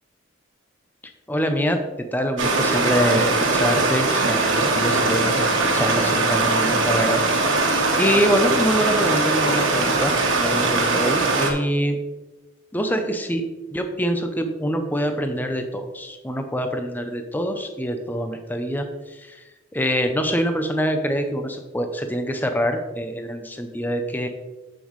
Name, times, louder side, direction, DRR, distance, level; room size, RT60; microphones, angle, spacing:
voice 1, 1.3-1.8 2.1-12.0 12.7-13.4 13.7-19.4 19.7-24.3, equal, 10° left, 6 dB, 0.5 m, -25 dB
Stream, 2.4-11.5, right 3 dB, 70° right, 1.3 m, -21 dB
7.5 x 7.2 x 3.1 m, 1.1 s
head